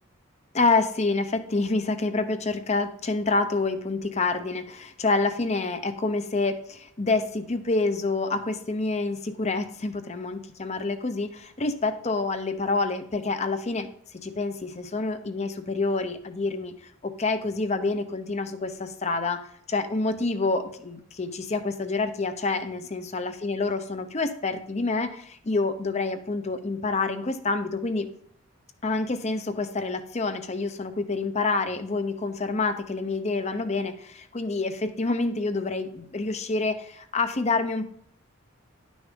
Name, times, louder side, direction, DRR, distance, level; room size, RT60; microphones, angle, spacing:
voice 1, 0.5-13.9 14.1-28.1 28.8-37.8, left 3 dB, 30° left, 9 dB, 0.7 m, -27 dB
10.5 x 6.2 x 3.6 m, 0.65 s
head